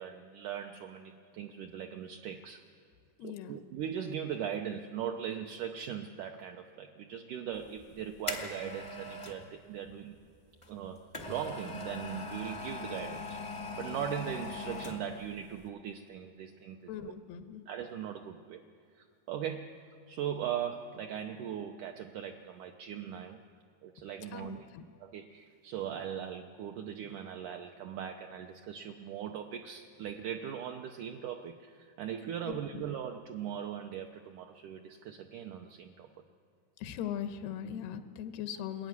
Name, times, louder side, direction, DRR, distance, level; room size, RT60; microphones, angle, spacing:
voice 1, 0.0-2.6 3.2-10.3 10.7-13.4 13.8-16.9 17.7-18.6 19.0-23.4 23.8-24.7 25.0-36.1, right 9 dB, 75° right, 4 dB, 1.9 m, -39 dB
voice 2, 3.2-3.6 16.9-17.6 24.3-24.8 32.5-32.8 36.8-38.9, left 9 dB, 90° left, 8 dB, 2.9 m, -40 dB
sound 1, 7.7-9.4 10.6-15.3 15.6-15.7, left 2 dB, 40° left, 0.4 m, -41 dB
21.5 x 13.5 x 9.6 m, 2.3 s
omnidirectional pair, 4.4 m